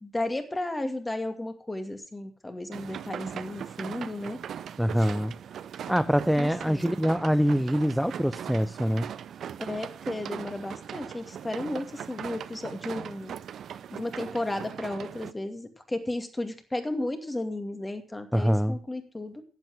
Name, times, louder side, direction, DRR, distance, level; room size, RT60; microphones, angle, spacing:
voice 1, 0.0-4.4 5.0-5.1 6.4-7.0 9.6-13.4 13.9-19.4, left 1 dB, 15° left, 2.3 m, -34 dB
sound 1, 2.7-15.3, right 9 dB, 60° right, 0.5 m, -40 dB
voice 2, 4.8-5.3 5.9-9.1 18.3-18.8, equal, ahead, 0.5 m, -24 dB
11.5 x 8.3 x 6.2 m
hypercardioid pair, 50°, 0 cm